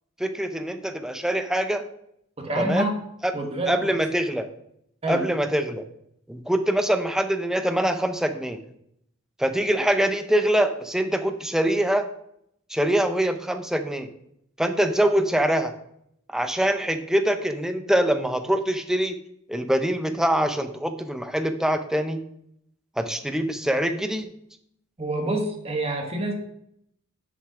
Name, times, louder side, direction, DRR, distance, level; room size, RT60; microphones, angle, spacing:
voice 1, 0.2-1.8 2.6-2.9 3.2-3.3 3.7-4.5 5.1-5.8 6.3-8.6 9.4-12.0 12.7-14.1 14.6-15.7 16.3-19.1 19.5-22.2 23.0-24.3, right 1 dB, 5° right, 7 dB, 0.6 m, -24 dB
voice 2, 2.4-2.9 3.3-3.9 5.0-5.3 25.0-26.3, right 2 dB, 30° right, 2 dB, 1.4 m, -27 dB
6.8 x 5.2 x 4.8 m, 0.73 s
head